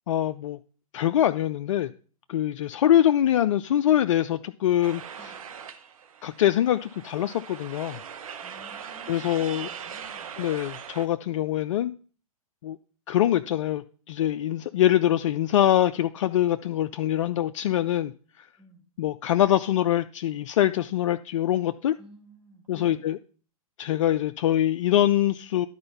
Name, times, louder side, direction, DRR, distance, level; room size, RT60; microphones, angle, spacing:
voice 1, 0.1-0.6 0.9-1.9 2.3-5.3 6.2-8.0 9.1-9.7 10.4-11.9 12.6-12.8 13.1-18.1 19.0-22.0 22.7-23.2 23.8-25.7, left 12 dB, 55° left, 10 dB, 0.4 m, -24 dB
sound 1, 4.8-11.1, right 7 dB, 65° right, 1.0 m, -41 dB
voice 2, 8.4-10.3 18.6-18.8 22.0-23.0, right 1 dB, 5° right, -3 dB, 2.3 m, -52 dB
11.0 x 4.4 x 5.5 m, 0.40 s
figure-of-eight pair, 115°, 19 cm